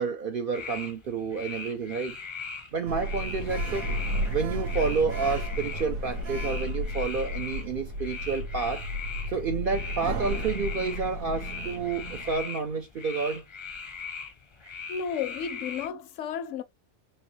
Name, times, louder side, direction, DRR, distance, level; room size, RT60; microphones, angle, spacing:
voice 1, 0.0-2.2 2.7-3.9 4.3-8.8 9.3-13.4, right 5 dB, 60° right, 0.5 m, -30 dB
sound 1, 0.5-15.9, left 5 dB, 30° left, 0.5 m, -40 dB
Sliding door, 2.9-12.4, equal, 90° right, 1.5 m, -33 dB
voice 2, 14.9-16.6, left 7 dB, 70° left, 0.9 m, -33 dB
4.6 x 3.1 x 3.1 m
omnidirectional pair, 1.4 m